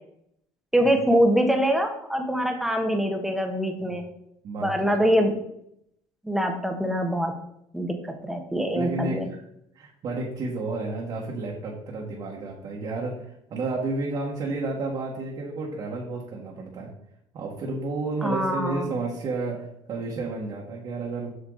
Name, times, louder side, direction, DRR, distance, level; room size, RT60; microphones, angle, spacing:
voice 1, 0.7-4.0 4.6-5.3 6.2-7.3 7.7-8.0 8.2-9.3 18.2-18.9, equal, 5° right, 4 dB, 1.4 m, -24 dB
voice 2, 4.4-5.1 8.7-9.4 9.7-16.9 17.3-21.3, right 3 dB, 50° right, -3 dB, 1.7 m, -31 dB
8.1 x 5.8 x 4.0 m, 0.75 s
cardioid pair, 120°, 9 cm